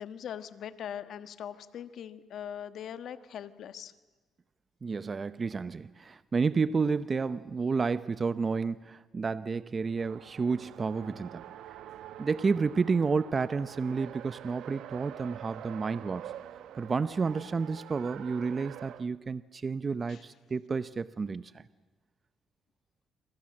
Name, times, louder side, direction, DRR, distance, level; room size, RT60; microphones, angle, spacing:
voice 1, 0.0-3.9 20.1-20.2, left 9 dB, 70° left, 1.4 m, -41 dB
voice 2, 4.8-11.4 12.2-16.3 16.7-21.6, right 4 dB, 35° right, 0.8 m, -30 dB
Race car auto racing, 9.8-19.1, right 11 dB, 80° right, 1.0 m, -46 dB
29.0 x 23.0 x 7.7 m
cardioid pair, 90°, 0 cm